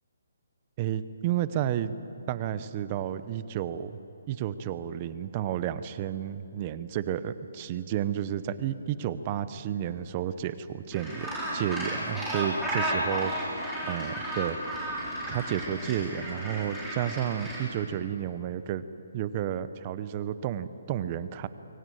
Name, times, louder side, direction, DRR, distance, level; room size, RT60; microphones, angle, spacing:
voice 1, 0.8-2.0 2.3-4.0 4.3-14.8 15.3-18.8 19.1-21.5, right 10 dB, 25° right, 14 dB, 0.7 m, -32 dB
Gull seagull, 10.9-17.6, right 1 dB, ahead, 4.1 m, -33 dB
23.5 x 17.5 x 9.2 m, 2.9 s
hypercardioid pair, 170°, 0 cm